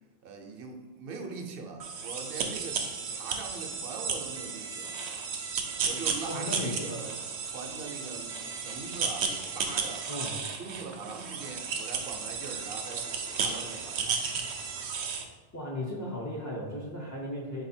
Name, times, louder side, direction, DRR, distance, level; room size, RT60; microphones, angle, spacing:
voice 1, 0.2-2.9 3.1-5.0 5.8-7.2 7.4-10.1 10.5-13.0 13.3-14.2, right 4 dB, 65° right, 3 dB, 0.8 m, -42 dB
sound 1, 1.8-15.2, right 5 dB, 85° right, 0.9 m, -34 dB
voice 2, 6.3-7.2 10.1-10.4 15.5-17.7, left 1 dB, 25° left, -4 dB, 0.4 m, -36 dB
4.4 x 2.7 x 4.2 m, 1.3 s
omnidirectional pair, 1.1 m